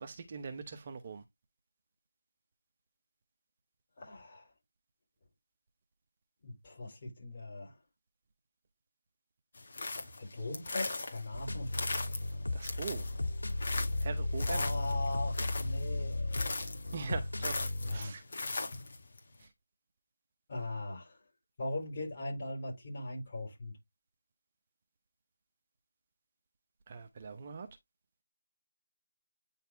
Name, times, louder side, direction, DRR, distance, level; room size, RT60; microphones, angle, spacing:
voice 1, 0.0-1.2 12.5-13.0 14.0-14.6 16.9-18.2 19.4-19.5 26.9-27.7, right 5 dB, 30° right, 0.8 m, -42 dB
voice 2, 4.0-4.5 6.4-7.7 10.2-11.8 14.5-16.5 17.8-18.2 20.5-21.2 21.6-23.7, left 2 dB, 30° left, 5.3 m, -40 dB
sound 1, 9.5-19.2, left 3 dB, 45° left, 2.0 m, -40 dB
sound 2, 11.3-18.0, left 2 dB, 80° left, 2.2 m, -35 dB
9.2 x 4.1 x 3.2 m
figure-of-eight pair, 170°, 0 cm